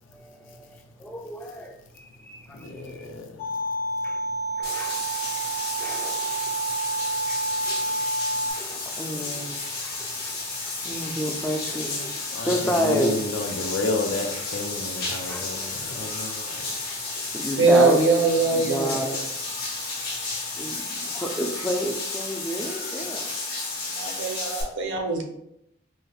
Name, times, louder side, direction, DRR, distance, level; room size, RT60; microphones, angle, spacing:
voice 1, 0.1-3.1 4.0-4.2 4.6-5.3 5.8-6.6 7.7-8.0 8.6-13.7 14.1-14.4 15.2-16.3 16.8-18.0 18.5-19.3 20.6-23.3, equal, 10° left, 0.3 m, -31 dB
voice 2, 2.6-3.2 12.3-12.5 12.9-16.6, left 3 dB, 90° left, 0.5 m, -30 dB
sound 1, 3.4-8.5, right 2 dB, 30° left, 0.7 m, -29 dB
Bathtub (filling or washing), 4.6-24.6, left 3 dB, 50° left, 1.3 m, -32 dB
voice 3, 17.6-19.0 23.0-23.1 23.8-25.2, right 3 dB, 80° right, 0.6 m, -22 dB
4.9 x 2.1 x 2.3 m
head